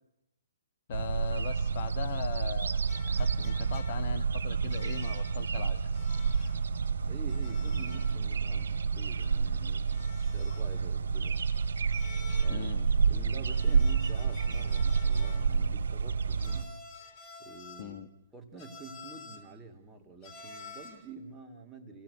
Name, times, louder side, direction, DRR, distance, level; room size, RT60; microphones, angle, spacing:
voice 1, 0.9-2.8 3.1-5.9 12.5-12.9 17.8-18.1, left 9 dB, 40° left, 11 dB, 1.2 m, -40 dB
sound 1, 0.9-16.6, right 5 dB, 60° right, 2.5 m, -29 dB
sound 2, 2.9-4.2 4.7-5.4 5.9-6.6 7.3-8.2 8.5-8.6 9.9-10.8 11.9-12.8 13.5-15.6 16.4-18.0 18.6-19.5 20.2-21.1, left 4 dB, 25° left, 3.8 m, -50 dB
voice 2, 7.1-11.5 12.4-12.7 13.1-16.7 17.4-18.0 18.3-22.0, right 3 dB, 10° right, 1 dB, 2.5 m, -48 dB
28.5 x 17.0 x 8.1 m, 0.89 s
figure-of-eight pair, 130°, 0 cm